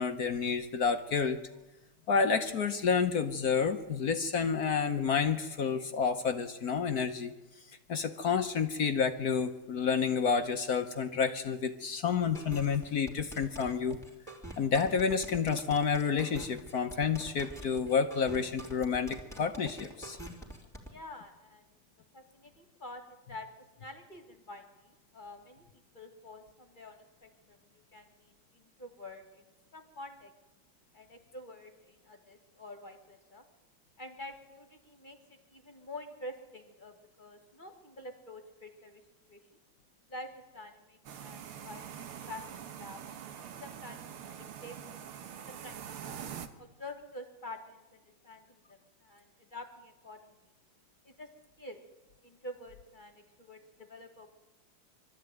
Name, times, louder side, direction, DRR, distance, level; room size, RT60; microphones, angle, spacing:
voice 1, 0.0-1.4 2.1-7.3 7.9-14.0 14.6-20.2, left 6 dB, 55° left, 8 dB, 1.2 m, -29 dB
sound 1, 12.3-20.9, right 1 dB, ahead, 3.1 m, -45 dB
voice 2, 20.8-21.6 22.1-23.5 23.8-25.7 25.9-27.6 27.9-30.3 30.9-33.4 34.0-39.0 39.3-39.4 40.1-43.0 43.6-44.0 44.4-45.0 45.5-46.2 46.6-50.4 51.0-51.3 51.6-51.8 52.2-54.3, left 1 dB, 25° left, 5 dB, 2.2 m, -48 dB
sound 2, 41.1-46.5, right 8 dB, 85° right, 2.1 m, -44 dB
24.0 x 13.5 x 9.2 m, 1.1 s
omnidirectional pair, 2.3 m